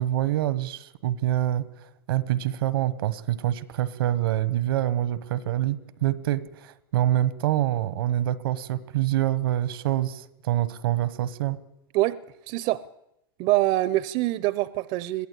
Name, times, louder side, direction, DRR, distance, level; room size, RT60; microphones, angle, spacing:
voice 1, 0.0-11.6, right 13 dB, 75° right, 1.2 m, -26 dB
voice 2, 12.5-12.8 13.4-15.3, right 17 dB, 45° right, 0.7 m, -24 dB
22.5 x 14.5 x 8.4 m
supercardioid pair, 130°, 12 cm